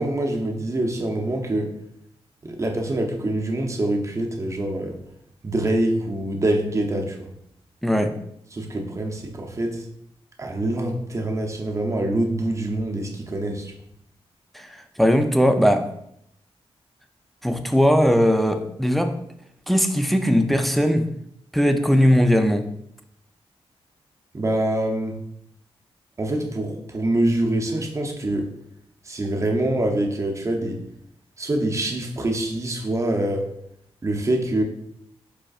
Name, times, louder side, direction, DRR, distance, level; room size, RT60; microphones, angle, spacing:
voice 1, 0.0-1.7 2.4-5.0 5.4-7.3 8.5-9.9 10.4-13.7 24.3-25.2 26.2-28.5 29.0-30.8 31.4-33.5 34.0-34.6, right 1 dB, 30° right, 2 dB, 0.7 m, -25 dB
voice 2, 7.8-8.2 14.5-15.9 17.4-19.2 19.7-21.1 21.5-22.7, equal, ahead, 6 dB, 0.4 m, -19 dB
5.2 x 4.3 x 2.4 m, 0.74 s
wide cardioid pair, 115°, 10 cm